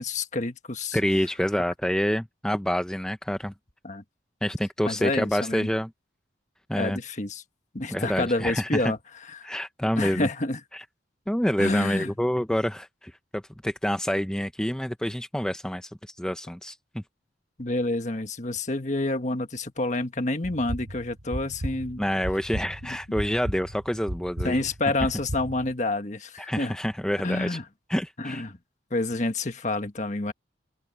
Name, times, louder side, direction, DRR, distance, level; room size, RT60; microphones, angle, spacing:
voice 1, 0.0-1.0 3.8-4.0 4.8-5.7 6.8-7.4 7.7-9.0 9.3-9.5 10.0-10.6 11.6-12.1 17.6-22.0 22.8-23.0 24.4-26.8 27.2-27.6 28.2-28.6 28.9-30.3, left 2 dB, 40° left, 1.5 m, -28 dB
voice 2, 0.9-3.5 4.4-5.9 6.7-7.0 7.9-8.9 9.4-10.3 10.7-10.8 11.3-16.8 22.0-24.6 26.5-27.6 27.9-28.4, equal, 5° left, 0.5 m, -27 dB
sound 1, 20.4-25.7, equal, 70° right, 1.7 m, -36 dB
open air
head